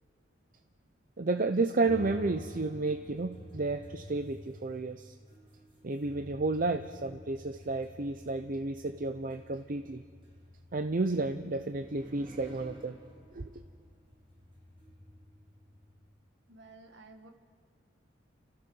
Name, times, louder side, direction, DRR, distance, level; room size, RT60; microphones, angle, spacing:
voice 1, 1.2-5.2 5.8-10.0 10.7-13.0 13.3-13.6, right 3 dB, 45° right, 8 dB, 0.6 m, -32 dB
sound 1, 1.9-16.1, equal, 25° right, 4.7 m, -50 dB
voice 2, 16.5-17.3, right 3 dB, 60° right, 5 dB, 1.7 m, -53 dB
29.5 x 15.0 x 6.2 m, 2.1 s
head